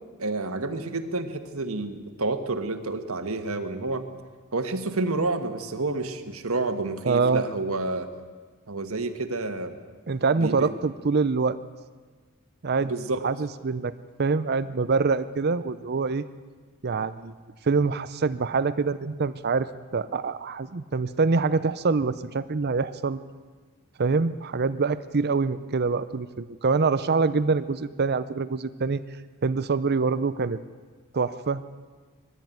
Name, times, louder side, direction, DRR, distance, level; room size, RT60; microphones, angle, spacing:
voice 1, 0.2-4.0 4.5-8.1 8.7-9.7 10.4-10.7 12.8-13.2, right 2 dB, 70° right, 7 dB, 1.6 m, -29 dB
voice 2, 7.0-7.4 10.1-11.6 12.6-12.9 13.2-13.9 14.2-16.2 16.8-17.3 17.6-23.2 24.0-29.0 29.4-30.6 31.1-31.9, right 4 dB, 45° right, 13 dB, 0.6 m, -25 dB
21.5 x 15.0 x 9.3 m, 1.5 s
head